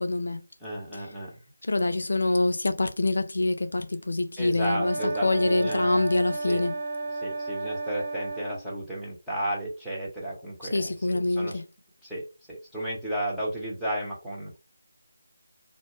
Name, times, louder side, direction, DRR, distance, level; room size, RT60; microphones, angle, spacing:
voice 1, 0.0-0.4 0.9-1.1 1.6-6.8 10.6-11.6, left 2 dB, 60° left, 0.4 m, -26 dB
voice 2, 0.6-1.4 4.4-6.1 6.5-6.6 7.2-11.6 12.0-14.6, right 1 dB, ahead, 0.8 m, -33 dB
sound 1, 4.7-8.6, right 3 dB, 40° right, 0.6 m, -33 dB
2.2 x 2.0 x 3.1 m
figure-of-eight pair, 165°, 0 cm